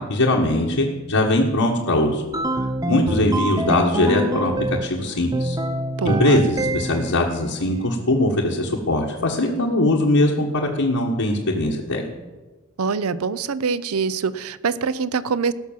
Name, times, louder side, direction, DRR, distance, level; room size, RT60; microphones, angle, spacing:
voice 1, 0.0-2.2 2.5-4.5 4.8-5.6 6.0-12.0, left 1 dB, 80° left, -3 dB, 1.6 m, -21 dB
sound 1, 2.3-5.0 5.3-7.2, right 1 dB, 15° right, 0.7 m, -25 dB
voice 2, 6.0-6.4 12.8-15.5, right 5 dB, 80° right, 16 dB, 0.6 m, -24 dB
18.0 x 6.1 x 7.4 m, 1.2 s
head